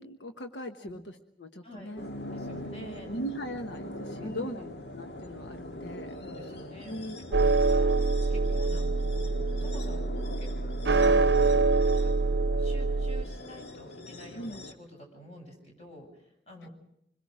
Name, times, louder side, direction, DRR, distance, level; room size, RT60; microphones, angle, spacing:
voice 1, 0.0-2.1 3.1-6.1 6.9-7.7 14.3-14.7 16.6-16.7, equal, 90° left, 7 dB, 1.2 m, -39 dB
sound 1, 2.0-14.7, left 1 dB, 65° left, 1.8 m, -42 dB
voice 2, 2.3-3.2 4.2-4.7 6.2-8.0 8.3-9.3 9.6-10.1 10.4-11.2 11.9-12.1 12.5-16.7, equal, 35° left, 2 dB, 7.4 m, -48 dB
sound 2, 7.3-13.2, right 3 dB, 70° right, 0.7 m, -25 dB
26.0 x 22.0 x 4.9 m, 0.76 s
head